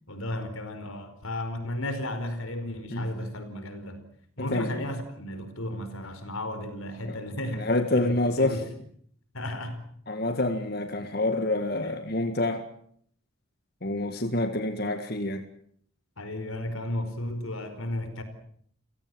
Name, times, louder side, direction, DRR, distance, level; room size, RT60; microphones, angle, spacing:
voice 1, 0.1-4.0 4.4-7.7 7.9-8.7 9.3-9.8 11.8-12.0 16.2-18.2, left 1 dB, 90° left, 4.8 m, -34 dB
voice 2, 4.4-4.8 7.0-7.2 7.5-8.6 10.1-12.6 13.8-15.4, left 2 dB, 50° left, 1.9 m, -27 dB
30.0 x 17.5 x 7.9 m
head